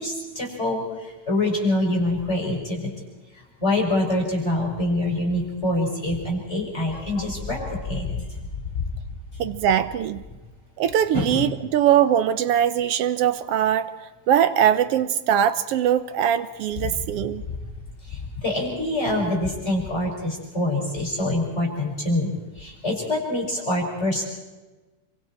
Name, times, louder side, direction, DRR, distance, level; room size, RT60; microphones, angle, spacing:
voice 1, 0.0-2.9 3.3-8.2 11.1-11.4 18.0-24.2, left 1 dB, 20° left, -2 dB, 5.4 m, -25 dB
voice 2, 9.4-10.2 10.8-13.9 14.3-17.4, right 10 dB, 85° right, 12 dB, 1.3 m, -21 dB
28.0 x 24.0 x 4.4 m, 1.2 s
omnidirectional pair, 3.8 m